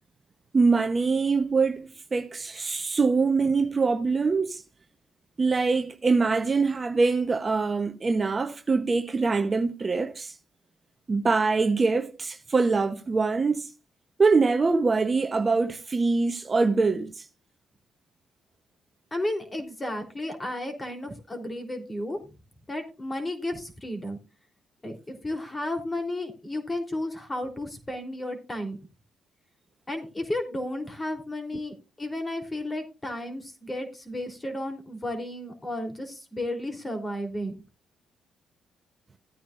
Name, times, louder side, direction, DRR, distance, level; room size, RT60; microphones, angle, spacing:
voice 1, 0.5-4.6 5.4-10.4 11.1-13.7 14.2-17.3, right 4 dB, 30° right, 0.9 m, -24 dB
voice 2, 19.1-22.2 22.7-24.2 24.8-28.8 29.9-37.5, left 1 dB, 20° left, 3.4 m, -33 dB
16.0 x 9.2 x 2.5 m
cardioid pair, 90°, 0 cm